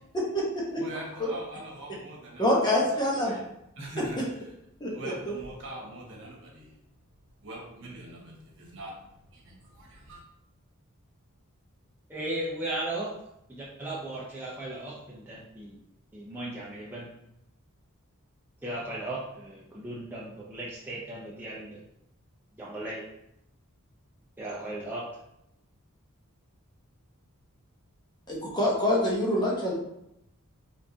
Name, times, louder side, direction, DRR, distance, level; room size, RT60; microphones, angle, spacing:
voice 1, 0.7-2.4 2.9-3.4 3.8-4.2 4.9-6.7 7.4-8.9 9.3-10.2, right 1 dB, 60° right, -2 dB, 1.3 m, -42 dB
voice 2, 2.4-3.3 4.8-5.3 28.3-29.7, left 1 dB, 20° left, -4 dB, 1.0 m, -26 dB
voice 3, 12.1-13.1 13.5-15.8 16.1-17.1 18.6-21.8 22.6-23.1 24.4-25.0, right 1 dB, 10° right, -7 dB, 0.7 m, -36 dB
5.1 x 3.5 x 2.8 m, 0.82 s
head